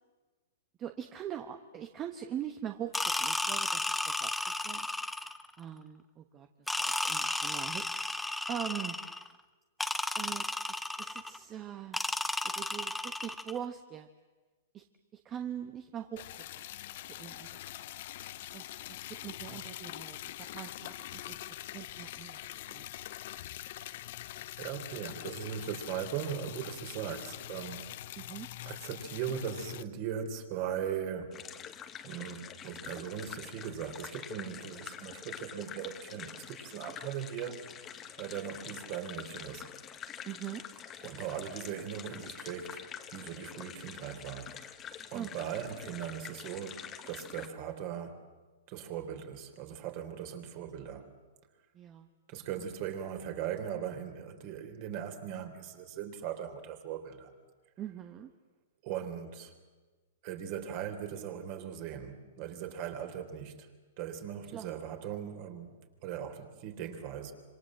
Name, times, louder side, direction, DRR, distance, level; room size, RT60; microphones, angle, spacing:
voice 1, 0.8-4.9 5.6-6.5 6.8-9.0 10.2-12.0 12.5-14.1 14.7-14.8 15.1-16.4 17.0-17.7 18.5-22.9 28.2-28.5 40.3-40.7 44.9-45.3 51.7-52.1 57.8-58.3 64.5-64.8, right 10 dB, 25° right, 6 dB, 1.2 m, -42 dB
sound 1, 2.9-5.5 6.7-9.3 9.8-11.4 11.9-13.6, left 2 dB, 5° left, 0.8 m, -33 dB
Liquid, 16.2-29.8, left 14 dB, 55° left, 0.8 m, -44 dB
voice 2, 24.6-27.8 28.7-31.3 32.0-37.6 38.2-39.7 41.0-42.9 43.1-44.7 45.1-48.3 48.7-51.1 52.3-57.3 58.8-59.5 60.2-63.5 64.0-67.3, right 9 dB, 40° right, 5 dB, 3.6 m, -39 dB
sound 2, 31.3-47.5, left 9 dB, 25° left, 1.4 m, -46 dB
27.0 x 26.0 x 7.6 m, 1.3 s
hypercardioid pair, 145°, 0 cm